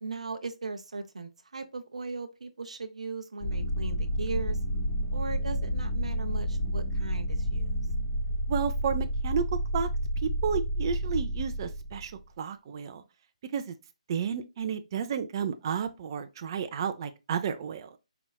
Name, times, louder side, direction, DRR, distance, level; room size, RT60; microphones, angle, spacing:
voice 1, 0.0-4.6 5.1-7.8, right 4 dB, 70° right, 0.8 m, -38 dB
sound 1, 3.4-12.1, equal, 30° left, 1.8 m, -30 dB
voice 2, 8.5-9.9 10.2-12.1 12.4-13.0 13.5-13.7 14.1-18.0, right 7 dB, 40° right, 0.6 m, -32 dB
4.9 x 3.5 x 2.3 m
figure-of-eight pair, 145°, 4 cm